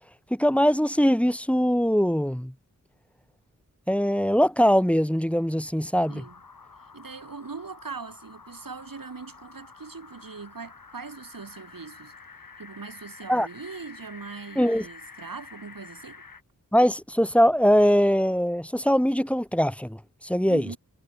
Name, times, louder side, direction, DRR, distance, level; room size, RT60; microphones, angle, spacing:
voice 1, 0.3-2.5 3.9-6.2 13.3-13.5 14.6-14.8 16.7-20.7, equal, 5° left, 2.5 m, -22 dB
sound 1, 6.0-16.4, left 4 dB, 85° left, 5.4 m, -48 dB
voice 2, 6.1-6.4 6.9-12.1 12.6-16.2 20.5-20.8, right 4 dB, 85° right, 4.1 m, -41 dB
cardioid pair, 40°, 33 cm